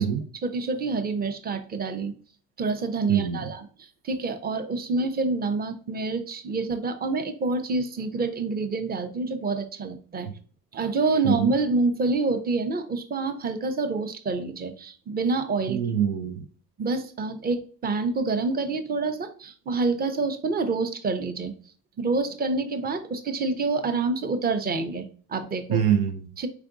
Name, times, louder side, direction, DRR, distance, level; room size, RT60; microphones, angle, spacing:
voice 1, 0.4-2.1 2.6-10.3 10.7-15.8 16.8-21.5 22.0-25.8 26.4-26.5, right 3 dB, 20° right, 8 dB, 0.7 m, -27 dB
voice 2, 15.7-16.4 25.7-26.2, right 8 dB, 90° right, 6 dB, 0.8 m, -24 dB
4.8 x 3.4 x 2.5 m, 0.41 s
hypercardioid pair, 65°, 47 cm